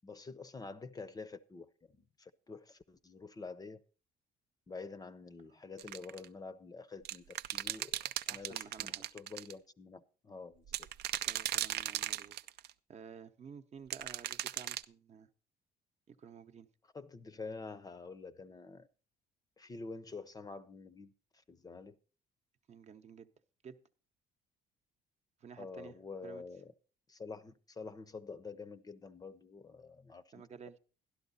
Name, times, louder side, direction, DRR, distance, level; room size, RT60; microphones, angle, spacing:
voice 1, 0.0-1.7 2.0-3.8 4.7-10.9 16.9-18.9 19.6-22.0 25.6-26.7 27.1-30.3, left 4 dB, 20° left, 0.6 m, -48 dB
sound 1, 5.8-6.2 7.0-9.5 10.7-12.7 13.9-14.8, right 14 dB, 75° right, 0.5 m, -37 dB
voice 2, 8.3-9.2 11.2-15.3 16.1-16.7 22.7-23.3 23.6-23.8 25.4-26.0 26.2-26.4 30.3-30.8, right 6 dB, 40° right, 0.8 m, -53 dB
12.0 x 12.0 x 4.1 m
cardioid pair, 110°, 17 cm